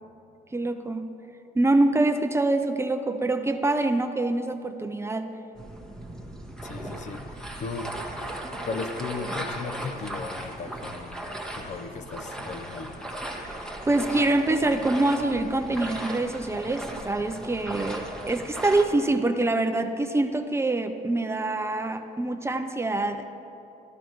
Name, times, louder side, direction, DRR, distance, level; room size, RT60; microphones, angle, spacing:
voice 1, 0.5-1.1 1.5-5.3 13.4-23.3, right 2 dB, 15° right, 7 dB, 0.6 m, -25 dB
sound 1, 5.5-18.8, right 1 dB, 5° left, 1.5 m, -37 dB
voice 2, 6.6-7.9 8.7-11.2 11.5-13.0, left 4 dB, 45° left, 9 dB, 0.8 m, -36 dB
13.0 x 12.5 x 4.7 m, 2.9 s
cardioid pair, 110°, 17 cm